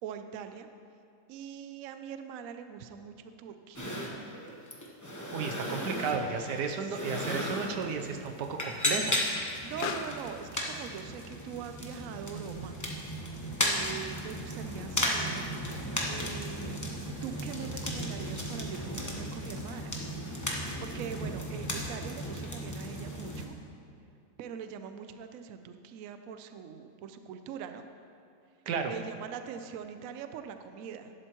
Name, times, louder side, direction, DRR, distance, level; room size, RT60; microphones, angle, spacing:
voice 1, 0.0-0.7 1.3-4.0 5.7-6.0 6.8-7.2 9.6-12.8 13.6-15.5 16.1-16.8 17.2-20.0 20.8-23.5 24.4-27.8 28.8-31.1, right 7 dB, 70° right, 8 dB, 0.9 m, -42 dB
sound 1, 3.7-23.4, equal, 15° left, 0.8 m, -35 dB
voice 2, 5.3-9.2 28.7-28.9, right 5 dB, 85° right, 5 dB, 1.3 m, -33 dB
Explosion, 9.4-14.6, left 6 dB, 75° left, 1.2 m, -47 dB
11.5 x 11.0 x 3.0 m, 2.5 s
omnidirectional pair, 1.7 m